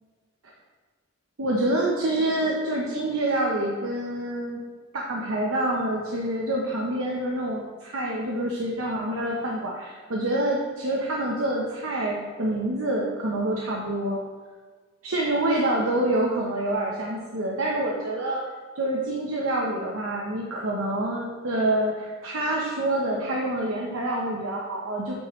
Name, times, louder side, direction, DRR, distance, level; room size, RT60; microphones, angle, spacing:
voice 1, 1.4-4.6 4.9-14.2 15.0-18.4 18.7-25.1, right 1 dB, 90° right, -2 dB, 0.9 m, -27 dB
8.4 x 5.4 x 3.1 m, 1.4 s
head